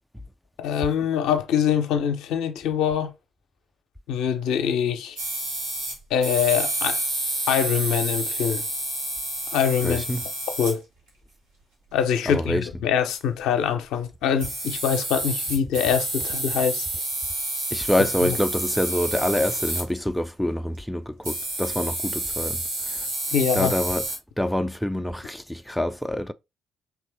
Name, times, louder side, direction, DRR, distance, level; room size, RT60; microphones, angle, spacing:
voice 1, 0.6-3.1 4.1-5.2 6.1-7.0 7.5-8.6 9.5-10.0 10.6-10.8 11.9-16.9 18.0-18.4 23.3-23.7, left 8 dB, 60° left, 0.6 m, -24 dB
sound 1, 5.2-10.7 13.1-13.4 14.0-14.1 14.4-19.9 21.2-24.2, right 2 dB, 80° right, 1.9 m, -29 dB
voice 2, 9.8-10.2 12.3-12.7 17.7-23.1 23.5-24.1 24.4-26.3, left 1 dB, 5° left, 0.4 m, -26 dB
4.8 x 3.2 x 3.2 m
figure-of-eight pair, 45°, 0 cm